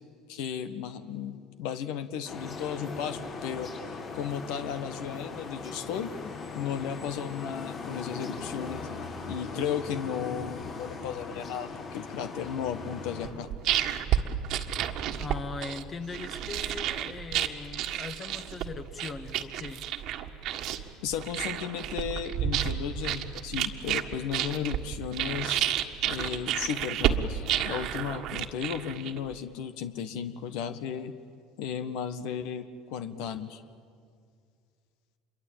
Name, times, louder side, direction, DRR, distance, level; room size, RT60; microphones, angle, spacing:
voice 1, 0.3-3.7 4.1-6.1 6.5-8.9 9.2-13.5 21.0-25.7 26.1-31.1 31.6-33.6, left 8 dB, 70° left, 10 dB, 1.4 m, -35 dB
sound 1, 2.2-13.3, left 4 dB, 50° left, 5.5 m, -39 dB
sound 2, 13.2-29.3, right 11 dB, 60° right, 1.6 m, -31 dB
voice 2, 15.2-19.8, left 4 dB, 35° left, 9 dB, 1.6 m, -40 dB
27.0 x 23.0 x 8.9 m, 2.2 s
hypercardioid pair, 75°, 0 cm